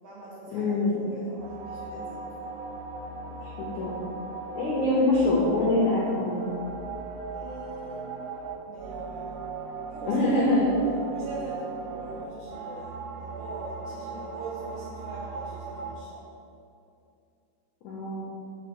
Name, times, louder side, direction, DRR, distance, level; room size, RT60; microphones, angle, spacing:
voice 1, 0.0-2.5 7.3-8.1 8.7-9.5 9.9-10.6 11.1-16.2, right 2 dB, 65° right, -6 dB, 2.1 m, -42 dB
voice 2, 0.5-0.9 3.4-3.9 4.5-6.5 10.1-10.7 17.8-18.2, left 2 dB, 85° left, -5 dB, 1.7 m, -24 dB
sound 1, 1.4-15.9, right 4 dB, 85° right, 2.8 m, -38 dB
6.5 x 4.2 x 6.3 m, 2.6 s
omnidirectional pair, 5.0 m